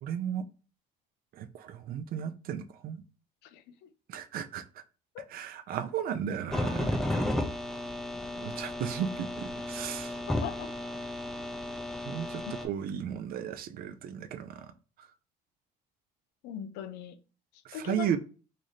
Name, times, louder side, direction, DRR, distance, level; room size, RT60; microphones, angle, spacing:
voice 1, 0.0-0.4 1.3-3.0 4.1-4.6 5.3-7.3 8.3-10.2 12.0-14.7 15.0-15.1 17.6-18.2, right 9 dB, 60° right, 0.4 m, -35 dB
sound 1, 6.5-12.6, left 1 dB, 5° left, 0.5 m, -33 dB
voice 2, 10.3-10.7 12.5-12.6 16.4-17.2 17.7-18.2, left 10 dB, 90° left, 0.4 m, -39 dB
3.2 x 2.6 x 3.9 m
cardioid pair, 110°, 17 cm